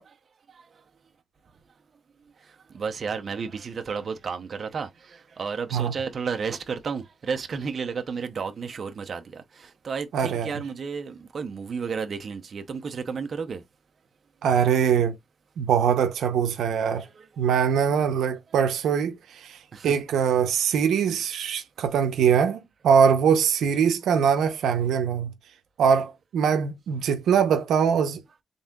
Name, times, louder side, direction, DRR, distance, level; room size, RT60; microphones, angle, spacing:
voice 1, 2.7-13.6 16.9-17.5 19.7-19.9, right 5 dB, 50° right, 0.7 m, -32 dB
voice 2, 10.1-10.5 14.4-15.2 15.6-17.1 17.4-19.6 19.8-25.3 25.8-28.2, right 7 dB, 90° right, 0.7 m, -22 dB
4.0 x 3.6 x 2.3 m
cardioid pair, 110°, 0 cm